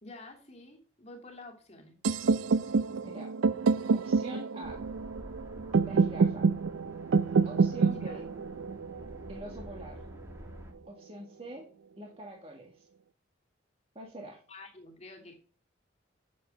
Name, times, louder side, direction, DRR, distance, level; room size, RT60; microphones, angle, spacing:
voice 1, 0.0-2.0 7.8-8.5 14.5-15.4, left 2 dB, 35° left, 3 dB, 2.2 m, -49 dB
sound 1, 2.0-10.0, right 4 dB, 90° right, 0.5 m, -28 dB
voice 2, 3.9-4.8 5.8-6.5 7.4-8.3 9.3-10.0 10.9-11.7 12.0-12.9 13.9-14.4, right 1 dB, 30° right, 0 dB, 1.7 m, -44 dB
sound 2, 4.6-10.7, equal, 15° right, 1.8 m, -49 dB
8.4 x 7.9 x 6.5 m, 0.41 s
head